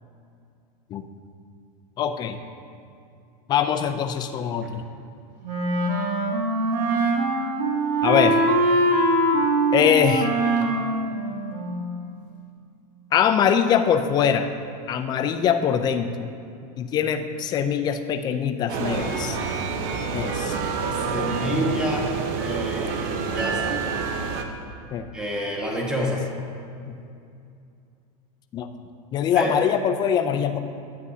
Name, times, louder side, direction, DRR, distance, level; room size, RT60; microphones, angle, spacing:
voice 1, 2.0-2.4 3.5-4.8 8.0-8.4 9.7-10.3 13.1-14.5 14.9-16.3 16.8-19.4 20.1-20.6 24.9-25.0 26.0-26.1 26.9-27.0 28.5-28.7 29.1-30.6, left 8 dB, 20° left, 7 dB, 0.4 m, -22 dB
Wind instrument woodwind instrument, 5.4-12.0, right 1 dB, 80° right, 1.4 m, -23 dB
sound 1, 18.7-24.4, right 5 dB, 45° right, 0.8 m, -27 dB
voice 2, 20.9-22.1 22.4-23.8 25.1-26.2 29.3-29.6, equal, 5° right, -2 dB, 1.2 m, -28 dB
12.5 x 9.4 x 2.8 m, 2.5 s
supercardioid pair, 150°, 21 cm